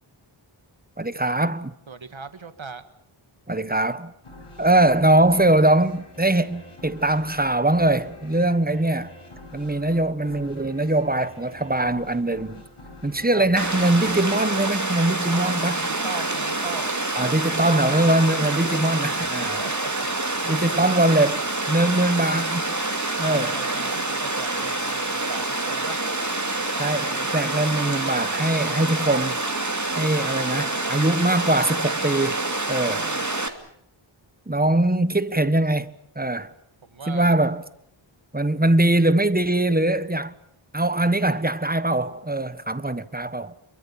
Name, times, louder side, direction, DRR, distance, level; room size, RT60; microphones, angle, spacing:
voice 1, 1.0-1.7 3.5-4.1 4.6-9.1 9.5-12.6 13.0-15.8 17.2-19.6 20.4-22.8 23.2-23.5 26.8-29.4 29.9-32.4 32.7-33.1 34.5-36.5 37.1-37.6 38.3-40.3 40.7-43.5, right 1 dB, 20° right, 1.3 m, -22 dB
voice 2, 1.9-2.8 13.3-13.7 15.2-16.9 19.4-20.1 20.5-21.0 23.2-26.0 32.9-33.3 36.8-37.3, right 4 dB, 65° right, 1.8 m, -38 dB
sound 1, 4.2-15.4, left 1 dB, 90° left, 6.3 m, -46 dB
Water, 13.6-33.5, right 2 dB, 35° right, 2.6 m, -27 dB
28.0 x 23.0 x 7.3 m
wide cardioid pair, 50°, 50 cm